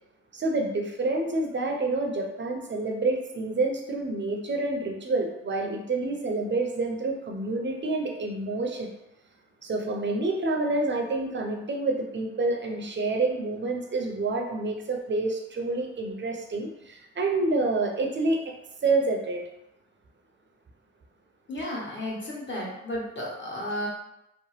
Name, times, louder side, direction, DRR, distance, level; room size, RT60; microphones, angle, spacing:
voice 1, 0.3-8.9 9.6-18.4 18.8-19.4, right 2 dB, 35° right, 3 dB, 0.6 m, -28 dB
voice 2, 21.5-23.9, left 1 dB, 35° left, -5 dB, 1.4 m, -33 dB
2.9 x 2.0 x 3.1 m, 0.86 s
supercardioid pair, 50°, 33 cm